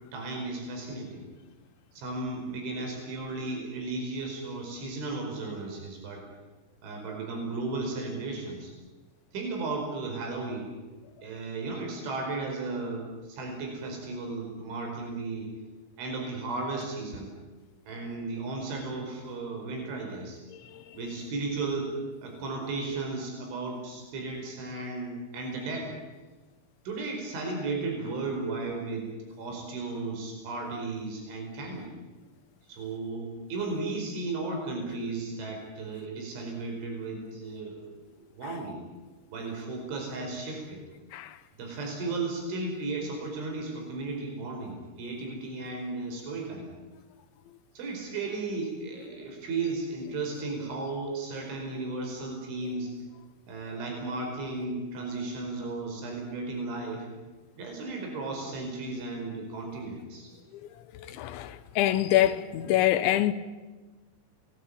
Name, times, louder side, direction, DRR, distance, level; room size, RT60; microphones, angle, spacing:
voice 1, 0.1-1.3 1.9-6.2 6.8-8.7 9.3-10.7 11.2-15.5 16.0-17.3 17.9-20.4 21.0-21.9 22.2-25.9 26.9-29.1 29.4-31.9 32.7-38.8 39.3-40.8 41.6-46.7 47.8-52.9 53.5-57.1 57.6-60.3, right 3 dB, 90° right, 7.3 m, -35 dB
voice 2, 20.5-21.2 38.4-38.6 41.1-41.4 49.0-49.1 60.5-60.6 60.9-63.3, left 13 dB, 80° left, 3.5 m, -27 dB
29.0 x 20.0 x 8.8 m
omnidirectional pair, 5.3 m